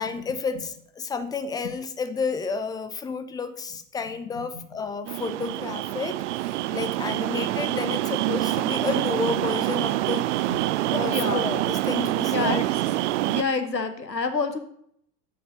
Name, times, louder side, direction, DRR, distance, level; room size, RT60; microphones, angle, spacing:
voice 1, 0.0-10.3 10.9-12.6, left 4 dB, 10° left, 11 dB, 0.4 m, -31 dB
sound 1, 5.1-13.4, right 16 dB, 50° right, 0.4 m, -26 dB
voice 2, 11.0-11.4 12.3-12.6 13.3-14.6, left 4 dB, 90° left, 8 dB, 1.1 m, -27 dB
7.3 x 5.6 x 7.0 m, 0.69 s
figure-of-eight pair, 80°, 49 cm